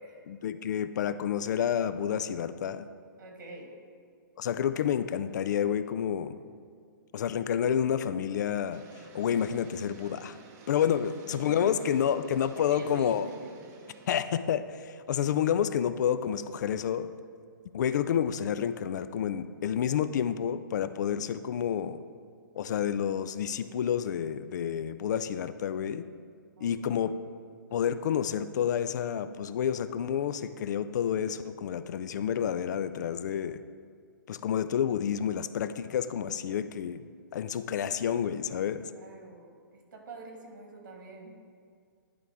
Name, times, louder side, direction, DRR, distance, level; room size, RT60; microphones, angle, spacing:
voice 1, 0.3-2.9 4.4-6.4 7.1-8.8 9.1-10.4 10.7-13.2 14.1-17.1 17.7-22.0 22.6-26.0 26.6-27.2 27.7-33.6 34.3-37.0 37.3-38.9, left 9 dB, 55° left, 12 dB, 0.4 m, -29 dB
voice 2, 3.2-3.7 11.3-12.2 12.5-13.7 26.6-27.1 38.8-41.4, right 2 dB, 70° right, 1 dB, 1.6 m, -46 dB
sound 1, 8.7-14.2, right 5 dB, 25° right, 0.7 m, -53 dB
11.0 x 4.8 x 3.4 m, 2.2 s
hypercardioid pair, 135°, 11 cm